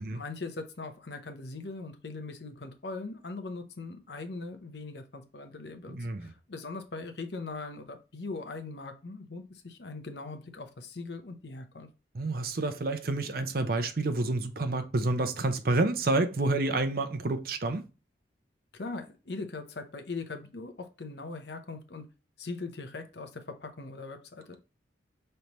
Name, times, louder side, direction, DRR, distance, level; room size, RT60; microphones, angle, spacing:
voice 1, 0.0-11.9 18.7-22.1 22.4-24.6, left 3 dB, 65° left, 0.8 m, -40 dB
voice 2, 5.9-6.3 12.1-17.8, right 2 dB, 55° right, 0.6 m, -29 dB
5.4 x 3.3 x 2.9 m
head